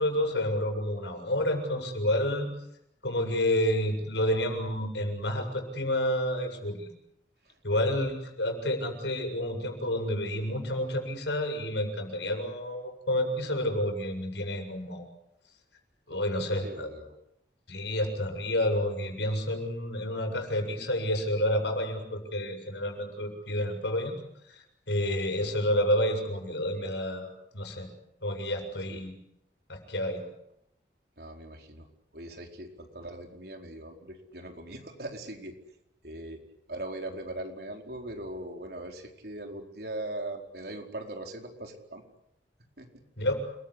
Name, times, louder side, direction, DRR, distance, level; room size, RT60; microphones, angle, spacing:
voice 1, 0.0-2.5 3.0-6.9 7.6-15.1 16.1-16.9 17.7-24.1 24.5-27.3 27.5-27.9 28.2-29.1 29.7-30.2 43.2-43.3, left 1 dB, 75° left, 5 dB, 7.2 m, -29 dB
voice 2, 16.5-17.2 28.9-29.0 31.2-31.9 32.1-35.6 36.0-36.4 36.7-42.0 42.8-42.9, right 1 dB, 60° right, 3 dB, 4.7 m, -40 dB
29.0 x 22.5 x 8.3 m, 0.79 s
head